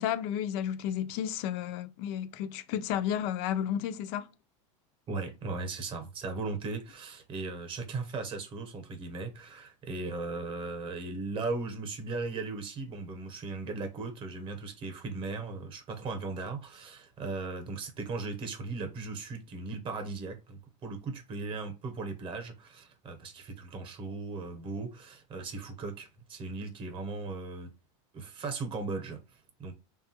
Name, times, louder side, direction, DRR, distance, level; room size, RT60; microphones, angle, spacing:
voice 1, 0.0-4.3, left 10 dB, 55° left, 0.4 m, -32 dB
voice 2, 5.1-27.7 28.1-29.7, right 3 dB, 30° right, 0.8 m, -37 dB
3.1 x 2.3 x 2.9 m
supercardioid pair, 140°, 16 cm